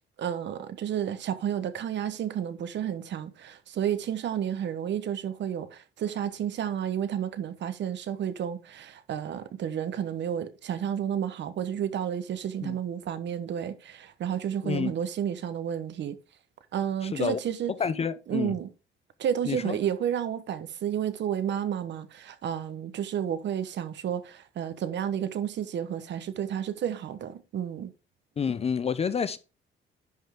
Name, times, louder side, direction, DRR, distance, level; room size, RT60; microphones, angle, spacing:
voice 1, 0.2-16.2 16.7-17.7 18.3-18.7 19.2-27.9, right 9 dB, 60° right, 1.0 m, -31 dB
voice 2, 14.6-14.9 17.0-17.4 17.8-18.6 19.5-19.8 28.4-29.4, left 6 dB, 30° left, 0.5 m, -29 dB
10.5 x 5.5 x 3.6 m
cardioid pair, 150°, 21 cm